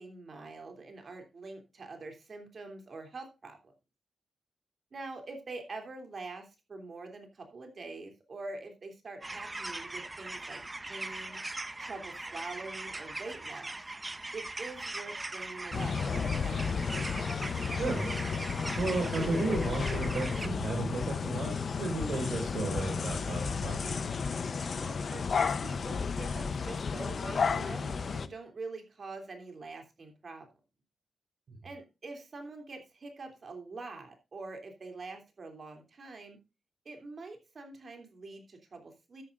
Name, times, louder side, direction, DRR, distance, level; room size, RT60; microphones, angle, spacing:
voice 1, 0.0-3.6 4.9-11.4 11.8-13.8 14.3-17.1 24.8-30.5 31.6-36.4 36.8-39.2, right 3 dB, 50° right, 5 dB, 3.0 m, -45 dB
sound 1, 9.2-20.5, right 2 dB, 20° right, 0.8 m, -40 dB
sound 2, 15.7-28.3, left 5 dB, 50° left, 0.8 m, -33 dB
voice 2, 17.8-18.1 18.8-21.5 21.8-24.0, right 3 dB, 65° right, -2 dB, 4.6 m, -33 dB
12.5 x 10.5 x 2.5 m, 0.26 s
wide cardioid pair, 110°, 0 cm